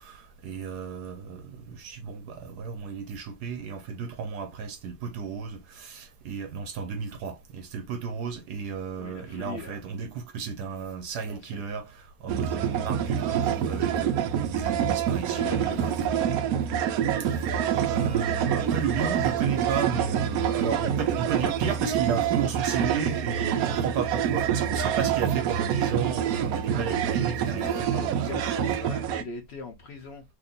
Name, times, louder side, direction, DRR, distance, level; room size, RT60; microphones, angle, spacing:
voice 1, 0.0-16.2 17.2-17.3 17.8-28.4, right 6 dB, 70° right, 1.0 m, -33 dB
voice 2, 9.0-9.8 11.2-11.7 15.3-16.4 20.8-20.9 27.5-30.2, left 4 dB, 60° left, 0.6 m, -40 dB
sound 1, 12.3-29.2, right 9 dB, 90° right, 0.8 m, -26 dB
2.8 x 2.8 x 3.9 m
omnidirectional pair, 2.1 m